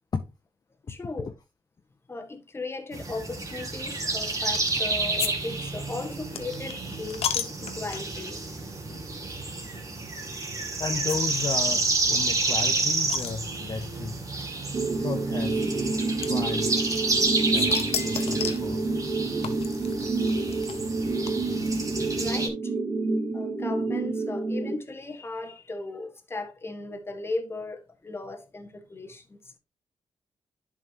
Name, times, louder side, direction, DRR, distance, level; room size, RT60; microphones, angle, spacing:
voice 1, 0.9-1.3 2.1-8.4 21.7-22.7 23.3-29.5, left 2 dB, 25° left, 1.5 m, -37 dB
sound 1, 2.9-22.5, right 3 dB, 35° right, 2.3 m, -30 dB
sound 2, 4.5-4.8 5.2-5.3 5.6-8.3 8.9-9.1 9.3-9.4 10.4-10.6 11.1-11.2 11.5-11.6 11.7-11.8 12.2-13.9 14.8-14.9 16.2-17.2 17.5-18.7 19.4-21.7, left 8 dB, 90° left, 0.9 m, -34 dB
voice 2, 10.8-14.3 15.0-15.7 16.2-16.9 17.5-19.1, left 5 dB, 40° left, 0.8 m, -34 dB
sound 3, 14.7-24.7, right 3 dB, 60° right, 2.3 m, -28 dB
11.0 x 5.5 x 2.8 m
cardioid pair, 105°, 10 cm